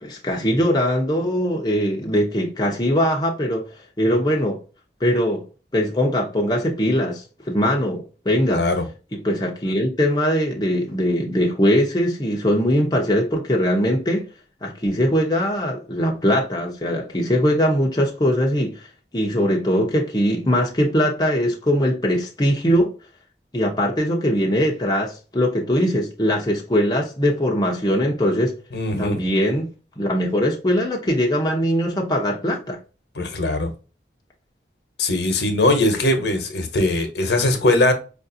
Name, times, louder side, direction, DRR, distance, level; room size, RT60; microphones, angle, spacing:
voice 1, 0.0-3.6 4.0-4.6 5.0-5.4 5.7-8.6 9.1-14.3 14.6-18.9 19.1-22.9 23.5-28.5 29.0-29.7 30.0-32.8, equal, 20° left, 0.7 m, -21 dB
voice 2, 8.5-8.8 28.7-29.2 33.2-33.7 35.0-37.9, left 2 dB, 70° left, 1.0 m, -20 dB
5.1 x 2.5 x 2.6 m
head